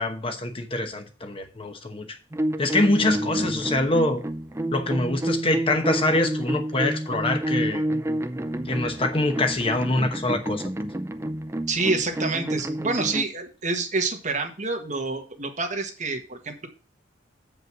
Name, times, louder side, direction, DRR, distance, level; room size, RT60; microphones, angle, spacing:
voice 1, 0.0-2.2 2.6-4.2 4.7-7.8 8.7-10.7, left 2 dB, 30° left, 1.0 m, -24 dB
sound 1, 2.3-13.3, right 1 dB, 15° right, 0.5 m, -29 dB
voice 2, 11.7-16.7, right 3 dB, 40° right, 1.5 m, -27 dB
7.8 x 5.4 x 6.0 m
head